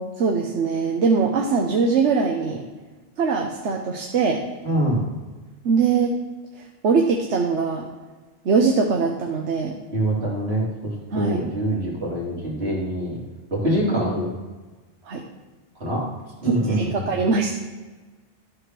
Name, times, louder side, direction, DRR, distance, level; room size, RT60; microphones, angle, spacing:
voice 1, 0.0-2.6 3.2-4.4 5.6-6.2 6.8-7.9 8.4-9.8 11.1-11.5 15.1-15.2 16.4-17.5, right 5 dB, 80° right, 2 dB, 1.2 m, -22 dB
voice 2, 4.6-5.0 9.9-13.2 13.5-14.3 15.8-16.1 16.4-17.2, right 1 dB, 60° right, -5 dB, 3.2 m, -24 dB
12.5 x 4.9 x 6.0 m, 1.3 s
omnidirectional pair, 1.2 m